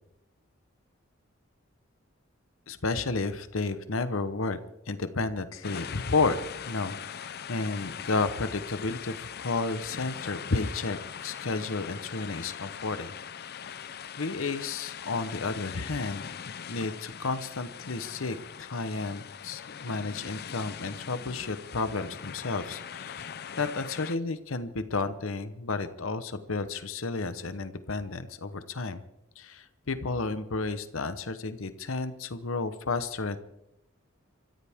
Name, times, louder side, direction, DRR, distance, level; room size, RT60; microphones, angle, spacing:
voice 1, 2.7-4.6 4.9-6.4 6.7-13.8 14.2-16.3 16.7-29.0 29.4-33.4, left 3 dB, 80° left, 11 dB, 1.0 m, -32 dB
sound 1, 5.6-24.2, left 8 dB, 55° left, 0.6 m, -41 dB
27.0 x 14.5 x 3.6 m, 0.81 s
head